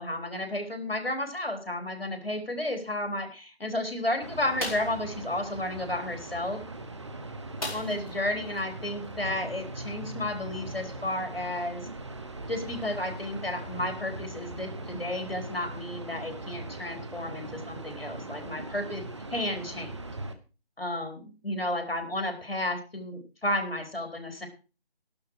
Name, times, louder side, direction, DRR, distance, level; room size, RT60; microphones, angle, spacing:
voice 1, 0.0-6.6 7.7-11.9 12.5-19.0 19.3-20.0 20.8-24.5, left 1 dB, 65° left, 5 dB, 4.1 m, -32 dB
sound 1, 4.2-20.3, right 2 dB, 30° right, 1.1 m, -40 dB
sound 2, 4.6-5.0 7.6-8.2 8.5-8.6 9.0-9.2, left 1 dB, 35° left, 4.6 m, -35 dB
12.0 x 12.0 x 4.8 m, 0.34 s
figure-of-eight pair, 160°, 31 cm